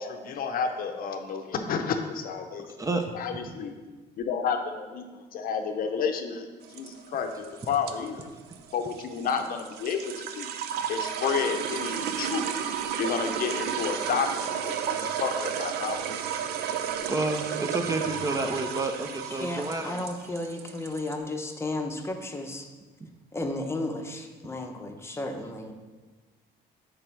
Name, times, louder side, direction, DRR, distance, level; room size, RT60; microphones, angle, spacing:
voice 1, 0.0-2.7 3.1-3.8 4.2-8.2 8.7-10.5 10.9-12.7 13.0-16.1, left 6 dB, 60° left, 6 dB, 0.6 m, -31 dB
voice 2, 2.8-3.1 17.1-20.0 23.0-23.1, right 2 dB, 20° right, 5 dB, 0.5 m, -29 dB
sound 1, 6.6-21.2, right 8 dB, 70° right, 0.5 m, -33 dB
voice 3, 19.3-22.7 23.3-25.7, left 2 dB, 15° left, 4 dB, 0.7 m, -33 dB
7.8 x 3.4 x 4.6 m, 1.3 s
cardioid pair, 110°, 17 cm